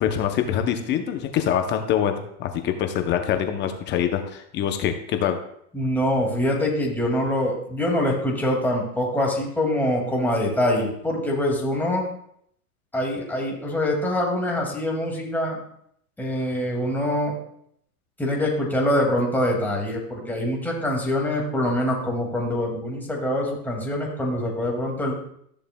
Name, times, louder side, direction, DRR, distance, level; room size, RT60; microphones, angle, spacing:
voice 1, 0.0-5.4, left 9 dB, 25° left, 6 dB, 0.6 m, -24 dB
voice 2, 5.7-12.1 12.9-15.6 16.2-17.4 18.2-25.1, left 1 dB, 5° left, -2 dB, 2.0 m, -24 dB
13.0 x 6.6 x 2.2 m, 0.70 s
hypercardioid pair, 130°, 44 cm